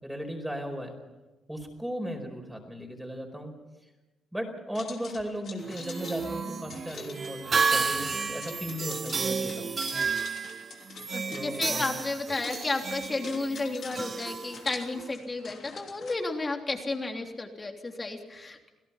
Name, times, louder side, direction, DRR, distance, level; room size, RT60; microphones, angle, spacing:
voice 1, 0.0-0.9 1.5-3.5 4.3-9.8 11.3-11.9, equal, 5° right, 3 dB, 4.9 m, -36 dB
sound 1, 4.7-16.1, left 5 dB, 55° left, 3.2 m, -46 dB
sound 2, 5.6-15.1, right 5 dB, 40° right, 0.9 m, -32 dB
voice 2, 11.1-18.7, left 2 dB, 25° left, 3 dB, 3.3 m, -32 dB
28.5 x 17.0 x 5.9 m, 1.1 s
cardioid pair, 90°, 0 cm